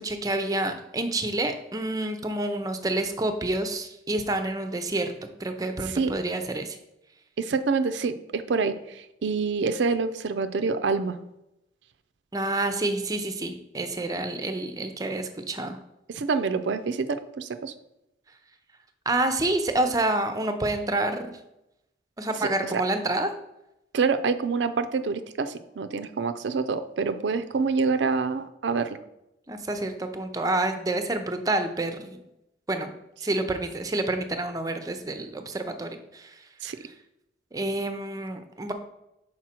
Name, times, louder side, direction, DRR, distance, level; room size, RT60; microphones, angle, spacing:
voice 1, 0.0-6.8 12.3-15.8 19.1-21.4 22.2-23.3 29.5-32.2 32.7-32.9 33.2-36.4 37.5-38.7, right 2 dB, 20° right, 8 dB, 0.5 m, -28 dB
voice 2, 5.9-6.2 7.4-11.2 16.1-17.7 22.6-22.8 23.9-29.0 36.6-36.8, right 4 dB, 75° right, 11 dB, 0.4 m, -27 dB
6.1 x 4.4 x 4.3 m, 0.86 s
head